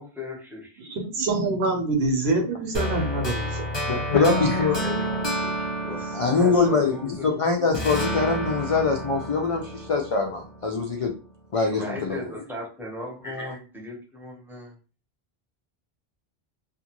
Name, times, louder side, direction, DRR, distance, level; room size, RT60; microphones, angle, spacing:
voice 1, 0.0-0.7 4.1-7.3 11.7-14.7, left 1 dB, ahead, 0.7 m, -37 dB
voice 2, 0.8-3.7, right 2 dB, 80° right, 1.0 m, -25 dB
sound 1, 2.7-7.3 7.7-10.8, equal, 30° left, 0.8 m, -30 dB
voice 3, 3.8-4.7 6.1-11.1 11.5-12.2 13.2-13.5, left 4 dB, 55° left, 0.3 m, -23 dB
2.5 x 2.5 x 2.9 m
omnidirectional pair, 1.0 m